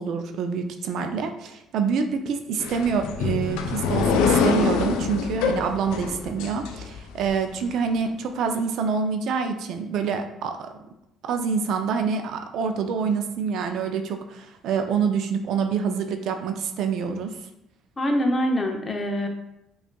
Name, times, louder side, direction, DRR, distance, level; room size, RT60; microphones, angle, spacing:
voice 1, 0.0-10.7 11.2-17.4, right 6 dB, 70° right, 6 dB, 0.4 m, -26 dB
sound 1, 2.6-7.3, left 5 dB, 85° left, 0.3 m, -25 dB
voice 2, 18.0-19.3, equal, 25° left, 3 dB, 0.6 m, -24 dB
5.0 x 2.4 x 2.2 m, 0.84 s
cardioid pair, 90°, 0 cm